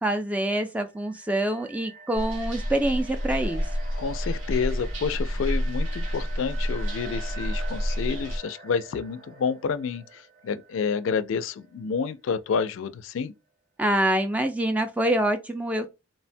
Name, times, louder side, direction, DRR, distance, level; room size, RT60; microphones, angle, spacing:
voice 1, 0.0-3.7 13.8-15.9, right 1 dB, 5° right, 0.3 m, -25 dB
sound 1, 0.9-11.6, right 3 dB, 45° right, 0.7 m, -45 dB
sound 2, 2.1-8.4, equal, 75° right, 0.8 m, -29 dB
voice 2, 4.0-13.3, left 6 dB, 85° left, 0.3 m, -29 dB
3.2 x 2.1 x 2.5 m
head